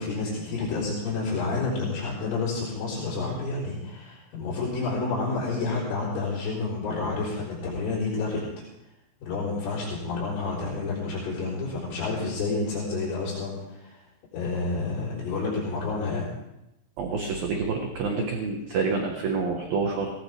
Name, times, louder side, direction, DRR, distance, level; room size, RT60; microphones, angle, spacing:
voice 1, 0.0-8.4 9.2-14.0 14.3-16.3, left 3 dB, 75° left, -8 dB, 6.5 m, -29 dB
voice 2, 17.0-20.1, right 4 dB, 65° right, 2 dB, 2.6 m, -28 dB
19.5 x 19.0 x 3.5 m, 0.90 s
omnidirectional pair, 5.8 m